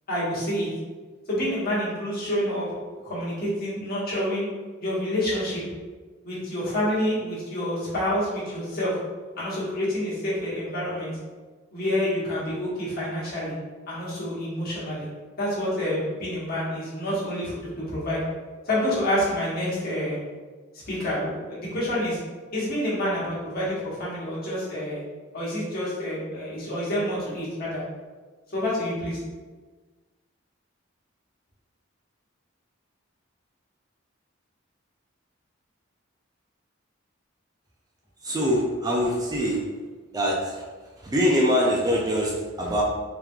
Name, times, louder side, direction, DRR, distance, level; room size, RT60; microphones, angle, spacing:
voice 1, 0.1-0.7 1.3-4.5 4.8-5.6 6.2-9.0 9.4-11.2 11.7-13.5 13.9-15.1 15.4-18.2 18.6-20.2 20.9-22.2 22.5-25.0 25.3-27.8 28.5-29.2, left 1 dB, 50° left, -8 dB, 1.2 m, -28 dB
voice 2, 38.2-39.6 40.1-40.6 41.0-42.8, equal, 20° right, -3 dB, 0.3 m, -23 dB
3.6 x 2.9 x 2.3 m, 1.4 s
head